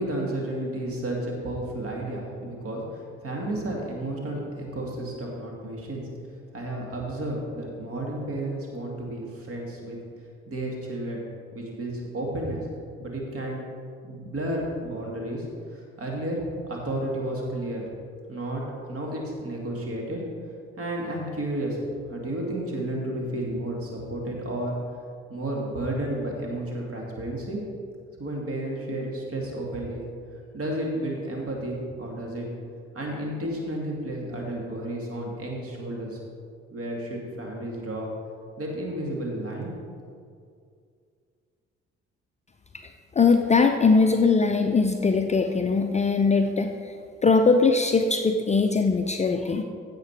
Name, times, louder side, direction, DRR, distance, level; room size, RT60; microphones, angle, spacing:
voice 1, 0.0-6.0 6.5-10.0 10.5-11.2 11.5-12.6 13.0-13.6 14.0-15.4 15.7-16.4 16.7-17.8 18.3-18.6 18.9-20.2 20.8-21.8 22.1-24.8 25.3-27.6 28.2-30.0 30.5-32.5 32.9-36.2 36.7-38.1 38.6-39.8, right 1 dB, 40° right, -1 dB, 2.5 m, -32 dB
voice 2, 43.2-46.9 47.2-49.6, left 4 dB, 20° left, 5 dB, 0.6 m, -21 dB
15.5 x 5.2 x 4.8 m, 2.3 s
figure-of-eight pair, 45°, 36 cm